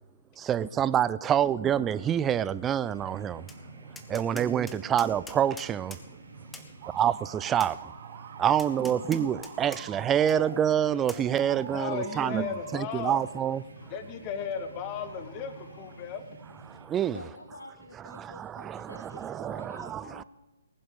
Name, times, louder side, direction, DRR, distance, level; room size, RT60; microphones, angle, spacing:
voice 1, 0.4-3.5 4.1-6.0 6.9-7.9 8.4-12.5 12.7-13.6 16.7-17.2 18.1-20.2, right 9 dB, 15° right, 0.3 m, -27 dB
sound 1, 2.8-16.9, right 3 dB, 80° right, 3.3 m, -49 dB
Tap, 3.5-3.6 4.0-6.0 6.5-6.7 7.6-7.7 8.6-9.8 10.3-10.4 11.1-11.2, left 3 dB, 5° left, 1.0 m, -44 dB
voice 2, 4.1-4.5 8.9-9.0 17.1-20.2, left 2 dB, 90° left, 1.2 m, -47 dB
sound 2, 6.8-12.8, right 9 dB, 35° right, 1.2 m, -45 dB
voice 3, 11.7-16.4, left 7 dB, 30° left, 1.3 m, -36 dB
19.5 x 7.6 x 6.9 m
figure-of-eight pair, 140°, 0 cm